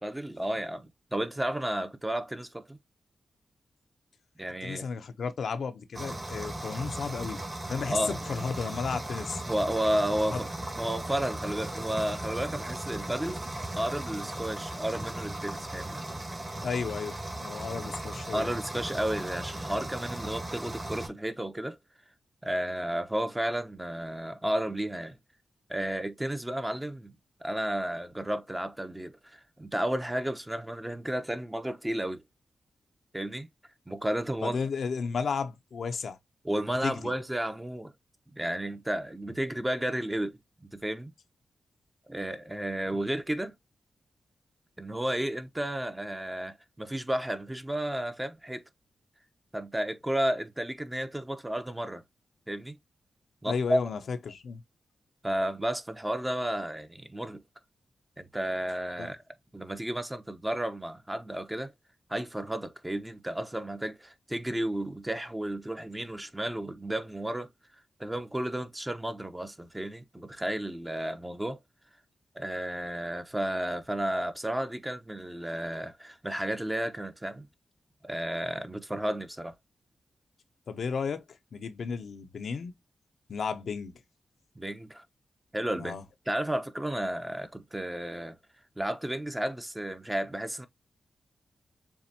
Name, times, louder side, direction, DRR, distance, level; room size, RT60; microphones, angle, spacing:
voice 1, 0.0-2.8 4.4-4.9 7.9-8.2 9.5-10.5 10.8-13.4 13.8-16.0 18.3-21.8 22.4-25.2 25.7-32.2 33.1-33.5 33.9-34.6 36.4-37.9 38.3-41.1 42.1-43.5 44.8-48.6 49.5-52.0 52.5-52.8 53.4-53.8 55.2-57.4 58.2-59.2 59.5-61.7 62.1-67.5 68.0-71.6 72.3-77.5 78.0-79.5 84.5-85.0 85.5-86.0 86.3-88.4 88.8-90.7, right 1 dB, 15° right, 1.0 m, -32 dB
voice 2, 4.6-7.4 7.7-9.4 16.6-18.5 34.4-36.2 36.8-36.9 53.5-54.6 59.0-59.1 80.7-81.2 81.5-82.7 83.3-83.9 85.8-86.0, left 5 dB, 75° left, 0.7 m, -33 dB
sound 1, 5.9-21.1, right 1 dB, 35° right, 2.3 m, -37 dB
7.0 x 2.5 x 2.8 m
supercardioid pair, 45°, 0 cm